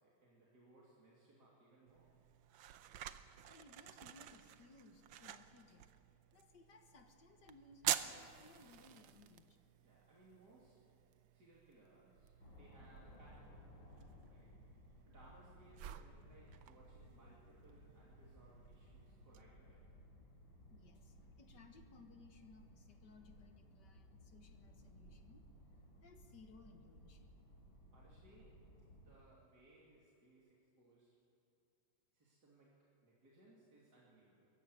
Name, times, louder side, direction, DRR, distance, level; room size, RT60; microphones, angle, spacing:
voice 1, 0.0-2.2 9.8-10.8 11.3-14.6 15.1-20.0 27.9-28.6 28.9-31.2 32.1-34.5, right 2 dB, 55° right, -6 dB, 3.5 m, -66 dB
sound 1, 1.9-19.4, right 11 dB, 90° right, 1.5 m, -49 dB
voice 2, 3.5-5.9 6.3-9.6 20.7-25.4 26.0-27.3, left 3 dB, 60° left, 5 dB, 2.0 m, -62 dB
sound 2, 12.4-29.1, equal, 80° left, 6.5 m, -60 dB
22.5 x 15.0 x 9.4 m, 2.6 s
omnidirectional pair, 2.1 m